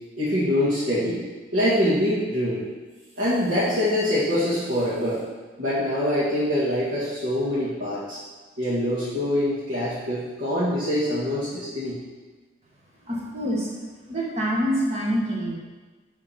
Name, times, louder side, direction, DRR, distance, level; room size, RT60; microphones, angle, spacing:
voice 1, 0.2-1.2 1.5-2.7 3.2-5.2 5.6-8.2 8.6-12.0, left 1 dB, 90° right, -12 dB, 2.0 m, -24 dB
voice 2, 13.1-13.7 14.1-15.6, equal, 35° right, -4 dB, 1.5 m, -25 dB
7.1 x 3.7 x 5.8 m, 1.3 s
head